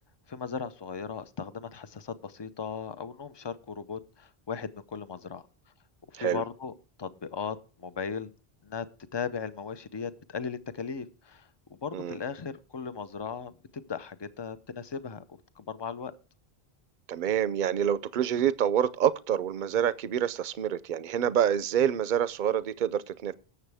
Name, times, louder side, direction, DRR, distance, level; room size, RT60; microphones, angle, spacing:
voice 1, 0.3-5.4 6.1-6.7 7.0-8.3 8.6-8.9 9.1-16.1, left 6 dB, 30° left, 0.6 m, -37 dB
voice 2, 17.1-23.3, right 9 dB, 55° right, 0.7 m, -27 dB
18.0 x 7.0 x 3.5 m
omnidirectional pair, 1.0 m